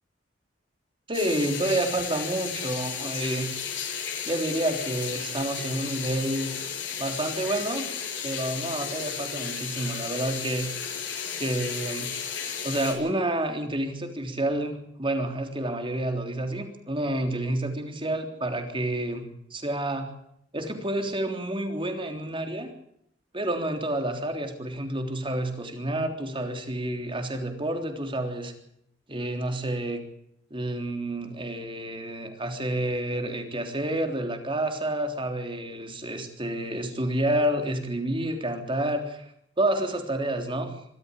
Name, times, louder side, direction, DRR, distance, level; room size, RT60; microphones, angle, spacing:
sound 1, 1.1-12.9, left 7 dB, 85° left, 6.9 m, -34 dB
voice 1, 1.1-3.5 4.3-6.5 7.0-7.9 8.2-10.7 11.4-12.1 12.6-20.1 20.5-22.7 23.3-28.5 29.1-30.0 30.5-39.3 39.6-40.7, right 1 dB, 30° right, 5 dB, 3.5 m, -29 dB
25.0 x 13.5 x 8.4 m, 0.73 s
head